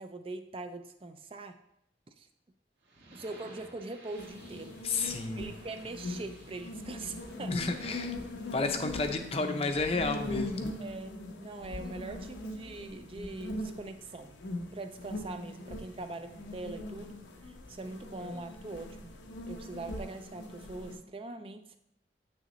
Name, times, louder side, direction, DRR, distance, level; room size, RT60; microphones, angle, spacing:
voice 1, 0.0-1.6 2.2-2.3 3.1-4.8 5.4-7.6 10.8-14.4 14.7-19.2 19.5-21.8, right 2 dB, 30° right, 7 dB, 0.4 m, -42 dB
sound 1, 2.8-9.5, right 1 dB, 75° right, 1.7 m, -56 dB
sound 2, 4.2-21.0, left 2 dB, 90° left, 0.9 m, -41 dB
voice 2, 4.8-5.5 7.5-8.1 8.5-10.7, left 3 dB, 35° left, 6 dB, 0.6 m, -31 dB
8.1 x 6.3 x 3.1 m, 0.78 s
head